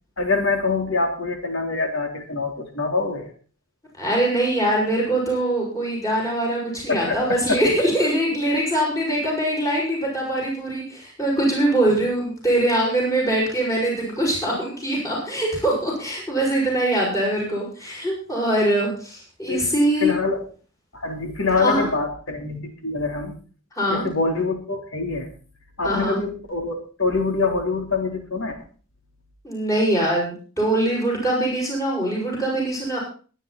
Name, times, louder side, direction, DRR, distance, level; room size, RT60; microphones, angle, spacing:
voice 1, 0.2-3.3 6.9-7.2 7.5-7.6 19.5-19.7 20.0-20.4 20.9-23.4 23.9-25.3 25.8-28.6, left 3 dB, 70° left, 3 dB, 3.8 m, -25 dB
voice 2, 4.0-20.1 21.6-21.9 23.7-24.1 25.8-26.2 29.4-33.0, right 1 dB, 15° left, -3 dB, 6.4 m, -22 dB
22.0 x 10.0 x 4.3 m, 0.39 s
head